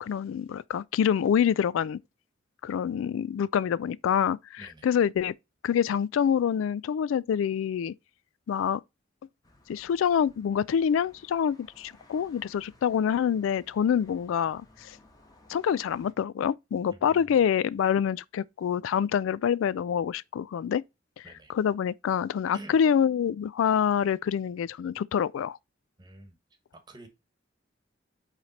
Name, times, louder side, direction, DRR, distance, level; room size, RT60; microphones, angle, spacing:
voice 1, 0.0-2.0 2.6-5.3 5.6-7.9 8.5-8.8 9.7-15.0 15.5-20.8 21.2-21.3 21.5-25.6, left 8 dB, 85° left, 0.3 m, -26 dB
voice 2, 4.6-4.9 16.9-17.4 21.2-21.5 22.5-22.8 26.0-26.4 26.7-27.1, right 2 dB, 20° right, 1.1 m, -48 dB
sound 1, 9.4-16.1, left 1 dB, 20° left, 1.3 m, -58 dB
8.8 x 3.3 x 4.1 m
head